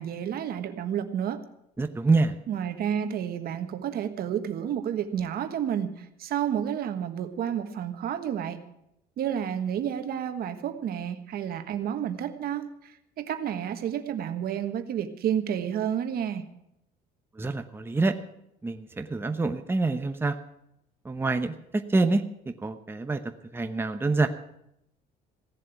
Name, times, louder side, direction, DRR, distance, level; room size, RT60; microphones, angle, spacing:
voice 1, 0.0-1.4 2.5-8.6 9.2-16.4, right 9 dB, 65° right, 8 dB, 1.5 m, -30 dB
voice 2, 1.8-2.3 17.4-18.1 18.6-20.4 21.0-21.5 21.9-22.2 22.6-23.2 23.5-24.3, right 3 dB, 15° right, 6 dB, 0.9 m, -26 dB
16.5 x 7.6 x 9.1 m, 0.81 s
cardioid pair, 110°, 17 cm